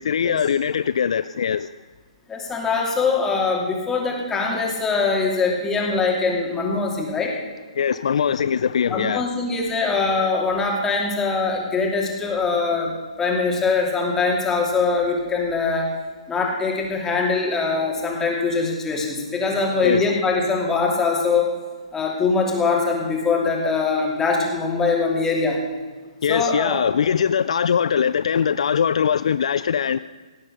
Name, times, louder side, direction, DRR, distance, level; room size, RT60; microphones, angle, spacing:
voice 1, 0.0-1.7 7.8-9.3 19.8-20.0 26.2-30.0, left 7 dB, 70° left, 0.4 m, -21 dB
voice 2, 2.3-7.3 8.9-12.9 13.2-15.9 16.3-21.5 21.9-25.6 26.3-26.8, left 4 dB, 10° left, 2.7 m, -22 dB
17.5 x 8.7 x 6.6 m
hypercardioid pair, 140°, 4 cm